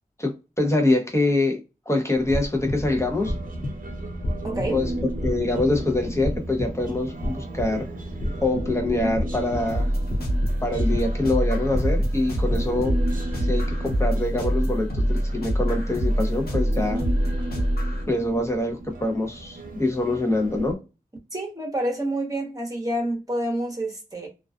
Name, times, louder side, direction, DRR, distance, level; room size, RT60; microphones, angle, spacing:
voice 1, 0.2-1.6 1.9-3.3 4.7-4.9 5.2-7.9 8.4-9.9 10.6-12.9 13.5-17.0 18.1-20.8, left 2 dB, 20° left, 0.7 m, -25 dB
sound 1, 2.1-13.0, left 1 dB, 50° left, 0.5 m, -33 dB
Human voice, 2.6-20.7, right 1 dB, 65° right, 0.7 m, -34 dB
voice 2, 4.4-4.8 21.3-24.3, right 1 dB, 25° right, 1.0 m, -28 dB
sound 2, 9.7-18.0, equal, 90° left, 0.8 m, -25 dB
2.4 x 2.3 x 2.4 m
wide cardioid pair, 80°, 15 cm